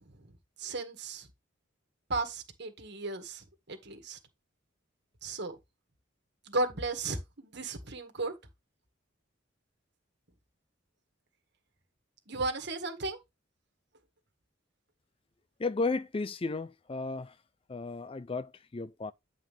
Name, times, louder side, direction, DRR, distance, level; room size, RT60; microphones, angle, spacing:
voice 1, 0.6-1.3 2.1-4.2 5.2-5.6 6.5-8.3 12.3-13.2, right 3 dB, 60° right, 1.8 m, -35 dB
voice 2, 15.6-17.4 17.7-19.1, left 3 dB, 30° left, 0.4 m, -34 dB
9.4 x 5.0 x 3.4 m
head